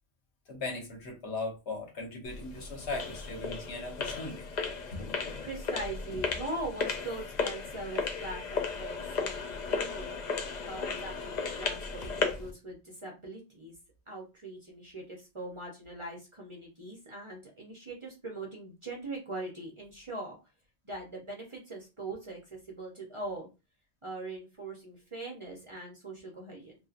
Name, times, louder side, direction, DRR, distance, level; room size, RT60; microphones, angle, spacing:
voice 1, 0.5-4.5 4.9-5.0, left 3 dB, 80° left, 1 dB, 1.2 m, -38 dB
sound 1, 2.2-12.5, left 5 dB, 55° left, 0.5 m, -35 dB
voice 2, 5.4-10.2 10.7-13.7 14.1-20.4 20.8-23.5 24.0-26.7, right 2 dB, 35° right, -1 dB, 0.6 m, -41 dB
2.7 x 2.5 x 2.4 m, 0.27 s
omnidirectional pair, 1.1 m